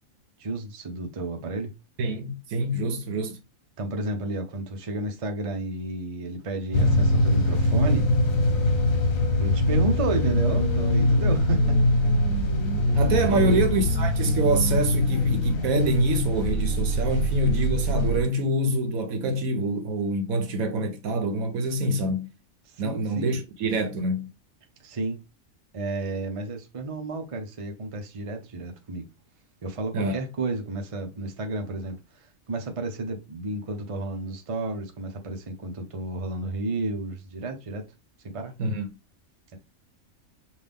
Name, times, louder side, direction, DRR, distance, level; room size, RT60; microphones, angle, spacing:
voice 1, 0.4-1.7 3.8-8.1 9.4-12.1 13.3-13.6 22.7-23.3 24.8-25.2 25.7-29.1 29.6-37.9 38.2-38.5, right 2 dB, 30° right, 0.7 m, -32 dB
voice 2, 2.0-3.4 12.9-22.3 22.8-24.3 29.9-30.2 38.6-38.9, right 1 dB, 80° right, 1.3 m, -25 dB
sound 1, 6.7-18.2, left 1 dB, 70° left, 1.5 m, -23 dB
5.8 x 2.6 x 3.5 m
omnidirectional pair, 1.5 m